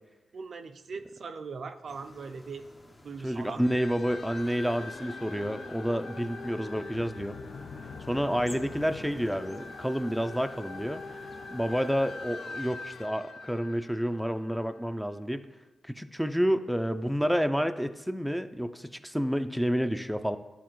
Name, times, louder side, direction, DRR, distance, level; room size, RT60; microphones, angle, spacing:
voice 1, 0.3-2.7 3.0-3.6, right 5 dB, 65° right, 8 dB, 0.4 m, -40 dB
sound 1, 1.9-13.1, left 1 dB, 30° left, 0.8 m, -54 dB
voice 2, 3.2-7.4 8.1-11.0 11.5-15.4 15.8-20.4, equal, ahead, 9 dB, 0.4 m, -29 dB
sound 2, 3.6-14.8, left 3 dB, 75° left, 0.5 m, -43 dB
Human voice, 4.4-9.3, left 1 dB, 55° left, 1.0 m, -52 dB
11.0 x 4.1 x 3.1 m, 1.2 s
cardioid pair, 55°, 0 cm